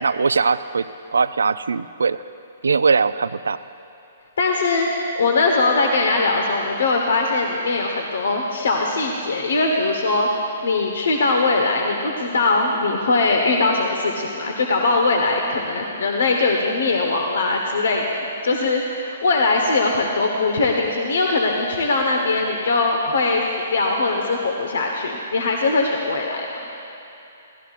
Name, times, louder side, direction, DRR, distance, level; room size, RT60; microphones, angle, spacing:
voice 1, 0.0-0.9 1.1-2.2 2.6-3.6, right 5 dB, 85° right, 14 dB, 0.4 m, -20 dB
voice 2, 4.4-23.4 23.7-26.5, left 3 dB, 75° left, 1 dB, 1.2 m, -21 dB
24.5 x 16.5 x 2.5 m, 2.9 s
hypercardioid pair, 130°, 0 cm